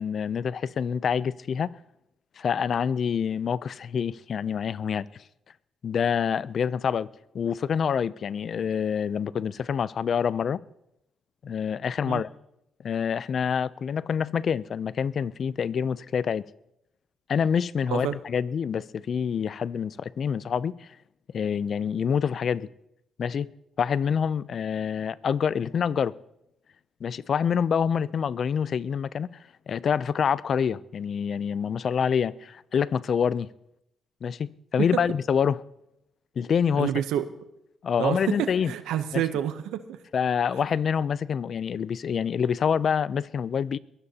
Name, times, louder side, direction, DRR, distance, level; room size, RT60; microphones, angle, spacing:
voice 1, 0.0-1.7 2.4-5.1 5.8-7.1 7.3-10.6 11.4-12.3 12.8-16.5 17.3-20.9 21.3-22.7 23.2-23.5 23.8-26.2 27.0-29.3 29.7-33.5 34.2-35.6 36.4-36.9 37.8-38.7 39.1-39.2 40.1-43.8, left 7 dB, 55° left, 0.4 m, -26 dB
voice 2, 36.8-37.3 38.0-40.0, right 10 dB, 90° right, 0.7 m, -28 dB
22.0 x 16.5 x 2.8 m
cardioid pair, 90°, 0 cm